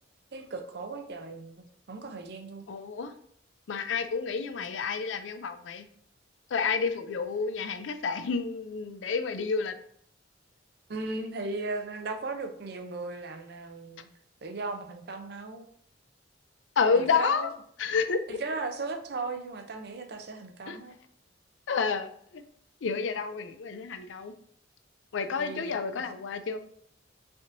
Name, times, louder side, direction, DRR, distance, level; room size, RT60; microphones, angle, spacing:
voice 1, 0.3-2.6 10.9-14.1 14.4-15.6 17.0-17.5 18.4-21.0 25.4-25.7, right 3 dB, 60° right, 7 dB, 0.5 m, -37 dB
voice 2, 2.7-3.1 3.7-5.9 6.5-9.7 16.8-17.5 17.8-18.4 20.7-20.8 21.7-22.4 22.8-24.3 25.1-26.6, left 5 dB, 85° left, 10 dB, 0.4 m, -29 dB
5.1 x 3.6 x 2.6 m, 0.66 s
head